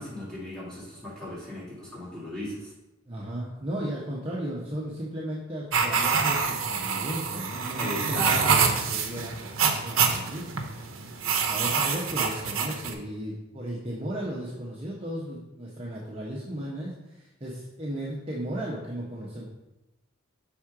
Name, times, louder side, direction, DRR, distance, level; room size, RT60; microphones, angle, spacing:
voice 1, 0.0-2.7 7.8-8.7, equal, 5° left, -10 dB, 2.3 m, -35 dB
voice 2, 3.1-10.5 11.4-19.4, right 1 dB, 30° right, -5 dB, 0.8 m, -35 dB
sound 1, 5.7-12.9, right 6 dB, 85° right, 0.7 m, -26 dB
6.1 x 3.6 x 4.7 m, 0.96 s
head